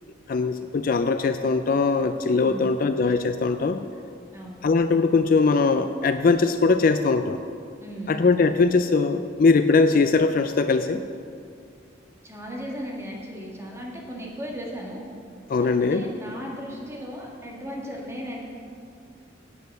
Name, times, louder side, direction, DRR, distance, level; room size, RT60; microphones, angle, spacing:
voice 1, 0.3-3.8 4.6-7.4 8.1-11.0 15.5-16.1, left 4 dB, 45° left, 10 dB, 0.4 m, -21 dB
voice 2, 2.4-2.7 4.3-4.6 7.8-8.2 12.2-15.0 15.6-18.4, equal, 15° right, -3 dB, 2.0 m, -36 dB
9.6 x 8.3 x 6.7 m, 2.3 s
head